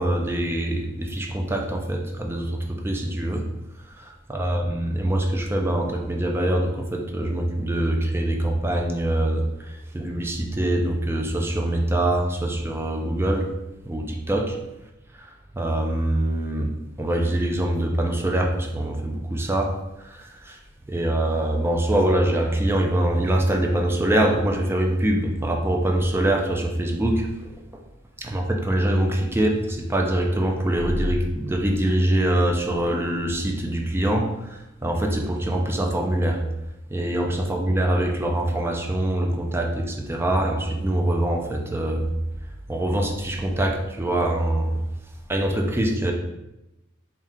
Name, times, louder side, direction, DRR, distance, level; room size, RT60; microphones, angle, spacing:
voice 1, 0.0-3.4 4.0-13.5 13.8-14.6 15.2-15.3 15.5-16.7 17.0-20.6 20.9-27.5 28.2-36.4 36.9-42.1 42.7-44.8 45.3-46.1, right 1 dB, 10° right, 2 dB, 0.4 m, -24 dB
4.3 x 2.4 x 3.5 m, 0.94 s
head